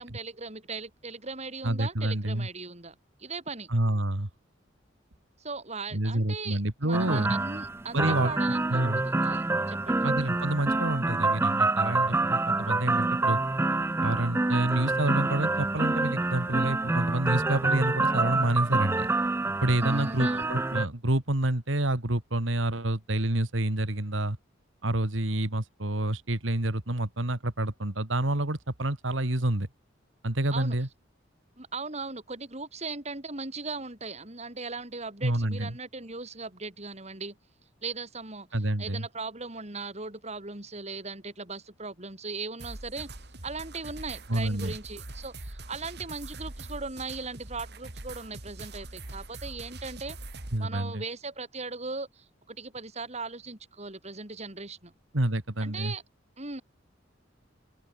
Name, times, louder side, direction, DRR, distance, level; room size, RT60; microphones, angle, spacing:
voice 1, 0.0-3.7 5.4-10.1 19.8-20.5 30.5-30.8 31.6-37.4 37.8-38.5 38.8-43.1 43.4-50.2 50.6-54.9 55.6-56.0 56.4-56.6, right 4 dB, 35° right, 3.9 m, -38 dB
voice 2, 1.6-2.5 3.7-4.3 5.9-7.4 7.9-8.3 8.7-9.0 10.0-13.4 14.0-19.1 19.6-24.4 24.8-29.7 30.2-30.9 35.2-35.8 38.5-39.1 44.3-44.8 50.5-51.0 55.1-55.9, right 1 dB, 85° right, 2.5 m, -28 dB
sound 1, 6.9-20.9, right 2 dB, 15° right, 0.4 m, -27 dB
sound 2, 42.6-50.6, right 2 dB, 60° right, 3.3 m, -43 dB
open air
head